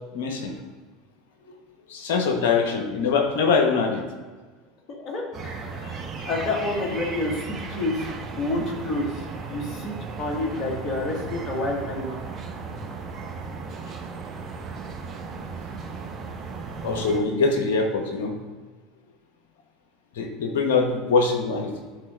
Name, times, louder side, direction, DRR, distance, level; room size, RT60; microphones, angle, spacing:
voice 1, 0.1-0.5 1.9-4.0 5.9-6.3 16.8-18.3 20.1-21.7, left 4 dB, 70° left, 4 dB, 1.0 m, -23 dB
voice 2, 4.9-5.9 6.3-12.2, left 2 dB, 45° left, -1 dB, 1.8 m, -29 dB
sound 1, 5.3-17.2, right 4 dB, 40° right, 1.2 m, -36 dB
11.0 x 4.0 x 2.5 m, 1.4 s
hypercardioid pair, 80°, 0 cm